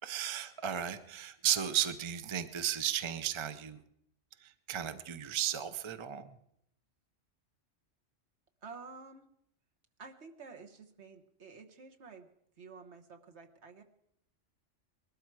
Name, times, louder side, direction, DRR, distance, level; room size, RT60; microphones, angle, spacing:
voice 1, 0.0-3.8 4.4-6.3, right 11 dB, 30° right, 11 dB, 0.6 m, -34 dB
voice 2, 8.6-9.3 10.0-12.3 12.6-13.8, right 4 dB, 65° right, 5 dB, 1.5 m, -50 dB
20.0 x 13.0 x 4.7 m, 0.74 s
omnidirectional pair, 1.3 m